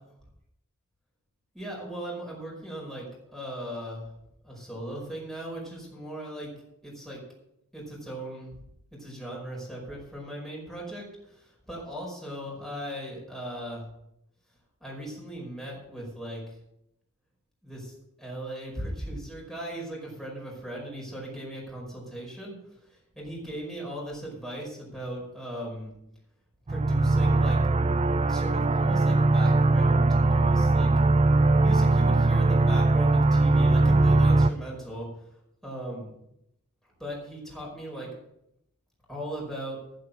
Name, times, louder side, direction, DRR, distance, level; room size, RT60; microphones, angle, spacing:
voice 1, 1.5-4.0 4.4-6.5 6.8-7.2 7.7-8.6 8.9-13.9 14.8-16.4 17.6-22.6 23.2-25.9 26.7-27.6 28.3-30.9 31.6-35.1 35.6-36.1 37.0-38.1 39.1-39.8, right 1 dB, ahead, -4 dB, 5.2 m, -38 dB
sound 1, 26.7-34.5, right 2 dB, 30° right, 0.5 m, -21 dB
14.0 x 7.9 x 6.4 m, 0.79 s
head